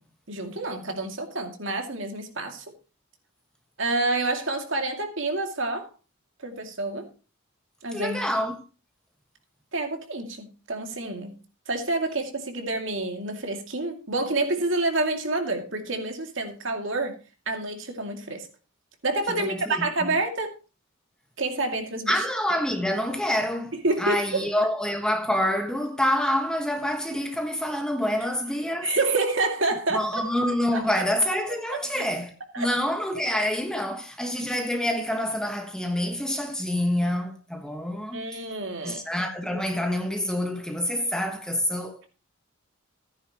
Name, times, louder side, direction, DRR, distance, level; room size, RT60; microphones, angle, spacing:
voice 1, 0.3-2.6 3.8-5.9 6.4-7.1 7.8-8.2 9.7-11.3 11.7-17.2 17.5-18.5 19.0-20.5 21.4-22.1 23.8-24.5 28.8-30.2 30.7-31.0 31.7-32.1 32.5-32.7 33.3-33.4 38.1-39.0, right 2 dB, 60° right, 2.4 m, -28 dB
voice 2, 7.9-8.6 19.3-20.2 22.1-29.0 29.9-38.3 38.8-42.0, left 1 dB, 5° left, 1.4 m, -27 dB
15.0 x 9.9 x 3.0 m
head